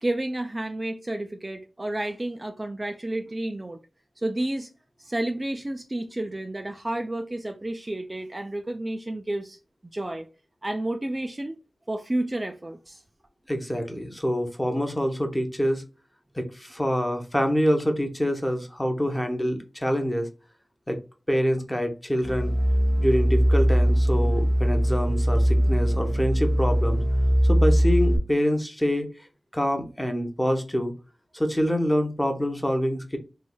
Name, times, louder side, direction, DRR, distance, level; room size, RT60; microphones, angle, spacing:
voice 1, 0.0-3.8 4.2-4.7 5.0-9.6 9.9-10.3 10.6-11.6 11.9-13.0, right 1 dB, 25° right, 0.3 m, -31 dB
voice 2, 13.5-15.8 16.3-20.3 20.9-21.0 21.3-22.5 23.0-27.0 27.4-29.3 29.5-30.9 31.3-33.2, equal, 10° left, 0.7 m, -26 dB
sound 1, 22.2-28.2, equal, 60° left, 0.6 m, -21 dB
3.1 x 3.1 x 2.2 m
wide cardioid pair, 80°, 0 cm